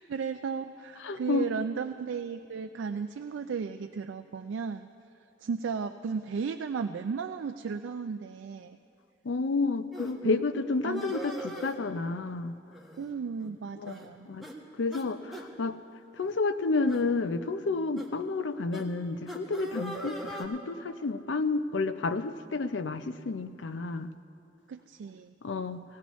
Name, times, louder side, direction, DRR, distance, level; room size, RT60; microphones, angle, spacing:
voice 1, 0.1-4.9 5.4-8.8 10.2-10.4 10.8-11.1 13.0-14.3 24.7-25.3, right 5 dB, 85° right, 7 dB, 0.4 m, -35 dB
voice 2, 1.0-1.5 9.2-12.6 13.8-13.9 14.3-14.5 14.8-15.8 16.2-24.1 25.4-25.8, left 3 dB, 75° left, 11 dB, 0.5 m, -30 dB
sound 1, 9.9-10.1 10.9-11.8 12.7-13.1 13.4-13.5 13.8-14.1 14.4-14.5 14.9-15.0 15.3-15.5 16.1-16.3 16.8-17.0 18.0-18.1 18.7-18.8 19.3-20.4, right 1 dB, ahead, 1.4 m, -40 dB
17.5 x 17.0 x 3.1 m, 2.6 s
head